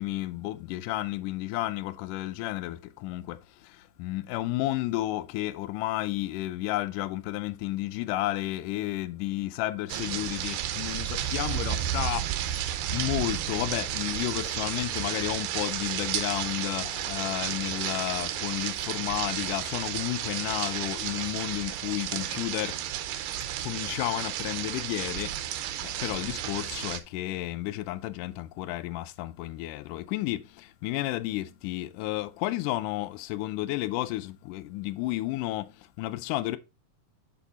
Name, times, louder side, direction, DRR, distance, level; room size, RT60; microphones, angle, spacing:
voice 1, 0.0-12.6 12.9-22.8 23.6-36.6, left 16 dB, 80° left, 2.1 m, -32 dB
sound 1, 9.9-27.0, right 11 dB, 85° right, 2.4 m, -32 dB
8.3 x 4.1 x 3.9 m
omnidirectional pair, 3.8 m